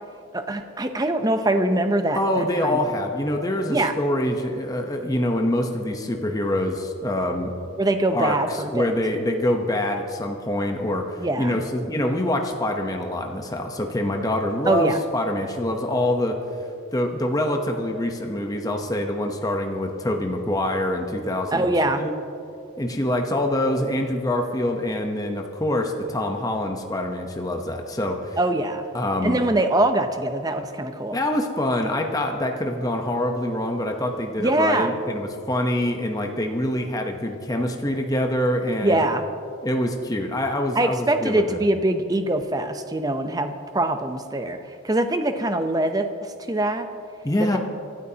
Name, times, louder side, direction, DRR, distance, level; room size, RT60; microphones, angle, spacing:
voice 1, 0.3-2.8 3.7-3.9 7.8-8.9 11.2-11.6 14.7-15.0 21.5-22.0 28.4-28.9 29.2-31.2 34.4-35.0 38.8-39.3 40.8-44.6 44.8-46.9, right 1 dB, 15° right, 7 dB, 0.6 m, -23 dB
voice 2, 2.1-7.5 8.1-16.4 16.9-21.7 22.0-22.1 22.8-28.4 28.9-29.4 31.1-39.0 39.6-41.6 47.2-47.6, left 1 dB, 15° left, 3 dB, 0.8 m, -25 dB
25.0 x 12.5 x 2.9 m, 2.6 s
head